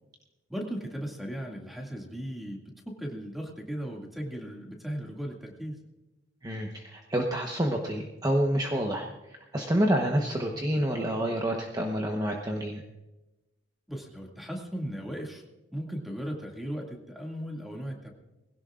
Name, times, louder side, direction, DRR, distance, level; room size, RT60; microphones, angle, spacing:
voice 1, 0.5-5.8 13.9-15.4 15.7-18.1, equal, ahead, 0 dB, 2.2 m, -37 dB
voice 2, 6.4-9.1 9.5-12.8, equal, 20° right, 1 dB, 1.1 m, -28 dB
21.0 x 17.0 x 2.5 m, 1.0 s
head